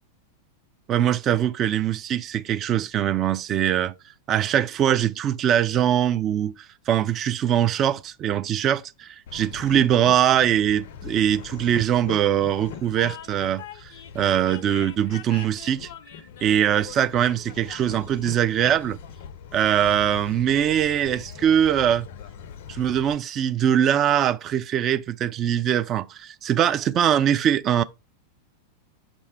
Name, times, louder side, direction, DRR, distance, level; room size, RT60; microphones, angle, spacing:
voice 1, 0.9-3.9 4.3-6.5 6.9-15.9 16.4-19.0 19.5-22.1 22.7-27.8, right 10 dB, 30° right, 0.3 m, -22 dB
Train, 9.3-23.1, left 8 dB, 55° left, 0.4 m, -41 dB
5.2 x 2.1 x 4.4 m
figure-of-eight pair, 90°, 0 cm